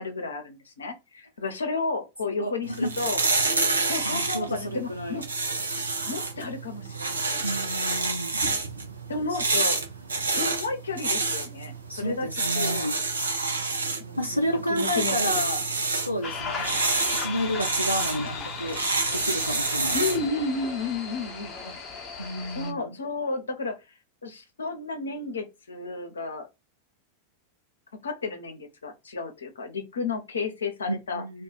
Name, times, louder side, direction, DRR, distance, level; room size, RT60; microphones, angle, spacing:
voice 1, 0.0-3.2 3.9-5.3 6.1-7.4 9.1-9.8 10.4-12.3 12.6-12.9 14.0-15.4 16.4-16.8 18.1-18.4 19.9-21.8 22.5-23.8 24.2-26.5 28.0-31.2, left 3 dB, 70° left, 0.8 m, -32 dB
voice 2, 2.3-2.9 4.0-5.2 7.4-8.4 9.3-9.4 11.9-12.9 14.2-16.8 17.2-18.8 19.1-20.0 22.2-23.0 30.9-31.4, equal, 90° left, 0.4 m, -31 dB
sound 1, 2.6-20.3, right 3 dB, 75° right, 0.7 m, -28 dB
sound 2, 16.2-22.7, left 5 dB, 30° left, 0.9 m, -36 dB
2.5 x 2.4 x 3.8 m
figure-of-eight pair, 90°, 0 cm